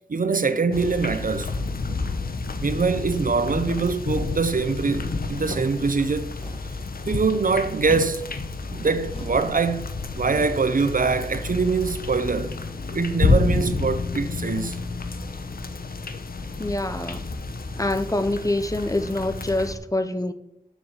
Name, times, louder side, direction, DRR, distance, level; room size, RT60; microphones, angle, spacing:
voice 1, 0.1-1.5 2.6-6.3 7.1-8.3 8.7-12.6 12.9-14.8, right 4 dB, 65° right, 0.7 m, -24 dB
sound 1, 0.7-19.7, left 3 dB, 90° left, 0.9 m, -30 dB
sound 2, 5.4-5.8 6.3-6.7 7.8-8.2 9.0-9.5 10.3-10.7, left 1 dB, 40° left, 1.9 m, -36 dB
voice 2, 16.6-17.2 17.8-20.3, left 1 dB, 20° left, 0.7 m, -25 dB
7.3 x 7.0 x 7.1 m
wide cardioid pair, 75°, 15 cm